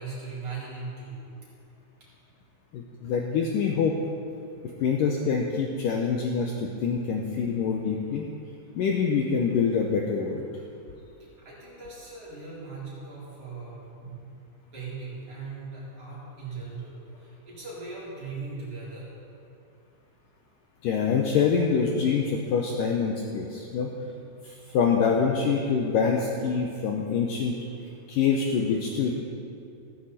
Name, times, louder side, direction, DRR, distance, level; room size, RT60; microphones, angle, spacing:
voice 1, 0.0-1.3 11.4-14.3 14.7-19.1, right 4 dB, 35° right, -8 dB, 4.9 m, -39 dB
voice 2, 2.7-4.0 4.8-8.3 8.8-10.5 20.8-23.9 24.4-27.6 28.1-29.1, left 6 dB, 75° left, 0 dB, 2.1 m, -25 dB
15.0 x 14.5 x 4.3 m, 2.5 s
omnidirectional pair, 4.6 m